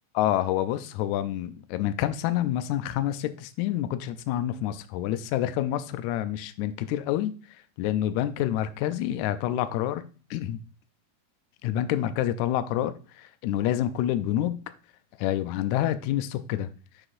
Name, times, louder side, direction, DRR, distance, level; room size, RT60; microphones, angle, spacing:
voice 1, 0.1-10.0 10.3-10.6 11.6-14.6 15.2-16.7, left 12 dB, 85° left, 1.7 m, -28 dB
11.0 x 4.9 x 2.5 m
omnidirectional pair, 3.9 m